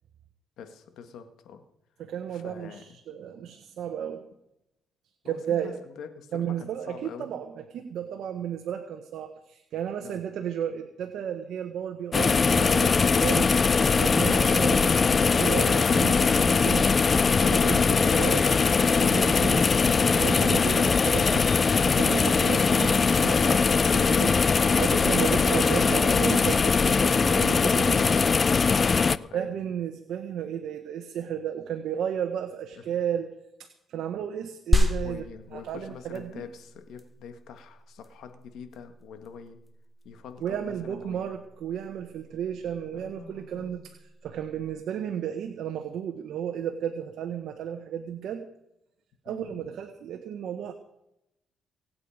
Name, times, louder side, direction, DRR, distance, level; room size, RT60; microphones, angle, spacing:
voice 1, 0.6-1.6 2.3-3.0 5.2-7.3 10.0-10.2 29.0-29.5 32.8-33.0 35.0-39.6 40.0-41.4 42.9-43.8 49.3-49.7, left 7 dB, 80° left, 7 dB, 2.0 m, -45 dB
voice 2, 2.0-4.2 5.2-5.8 6.3-13.5 14.0-16.9 17.4-18.7 19.0-19.7 20.1-21.5 21.9-24.4 24.8-28.0 29.3-33.3 33.6-35.2 35.5-36.5 40.4-43.8 44.2-48.4 49.2-50.7, right 9 dB, 75° right, 6 dB, 1.3 m, -33 dB
sound 1, 12.1-29.2, left 5 dB, 35° left, 0.5 m, -21 dB
sound 2, 34.7-44.7, equal, 5° right, 2.8 m, -32 dB
25.0 x 8.8 x 5.1 m, 0.86 s
cardioid pair, 90°, 0 cm